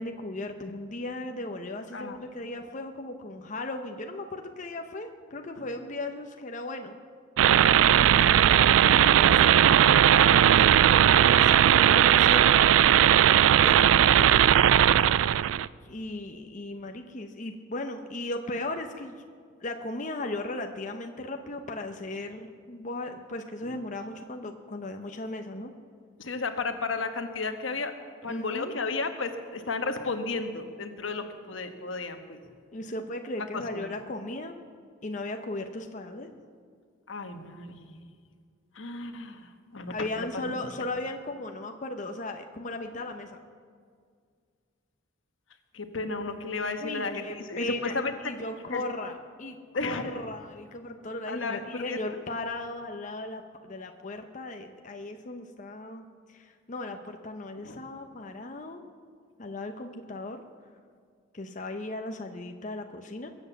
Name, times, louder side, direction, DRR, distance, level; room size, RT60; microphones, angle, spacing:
voice 1, 0.0-7.0 7.9-12.7 13.6-14.6 15.8-19.2 19.6-25.7 28.3-28.7 32.7-34.7 35.0-36.3 39.9-43.4 46.8-48.0 48.2-58.9 59.4-60.4 61.3-63.3, left 2 dB, 40° left, 5 dB, 0.8 m, -37 dB
sound 1, 7.4-15.7, right 10 dB, 85° right, 0.3 m, -18 dB
voice 2, 26.2-27.9 28.2-32.4 33.4-33.9 37.1-38.0 38.7-40.5 45.7-48.1 48.7-48.8 49.7-50.2 51.3-52.2 57.6-57.8, left 3 dB, 80° left, 7 dB, 1.3 m, -33 dB
22.0 x 8.1 x 7.0 m, 2.1 s
head